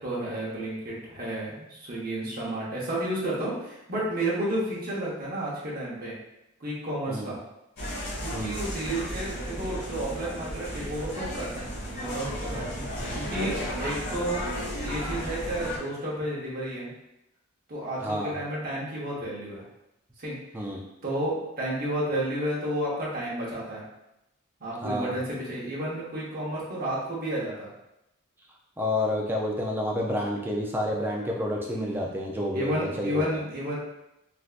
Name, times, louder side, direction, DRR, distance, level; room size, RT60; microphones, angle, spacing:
voice 1, 0.0-6.2 6.6-7.4 8.2-11.6 11.9-12.7 13.1-14.5 14.7-16.9 17.7-19.6 20.2-20.3 21.0-23.8 24.6-27.7 31.6-32.0 32.5-33.8, right 1 dB, 45° right, -5 dB, 0.9 m, -31 dB
sound 1, 7.8-15.8, equal, 50° left, 1.2 m, -34 dB
voice 2, 18.0-18.3 20.5-20.8 24.8-25.1 28.8-33.4, left 1 dB, 10° right, -2 dB, 0.4 m, -29 dB
3.3 x 2.6 x 2.4 m, 0.89 s
head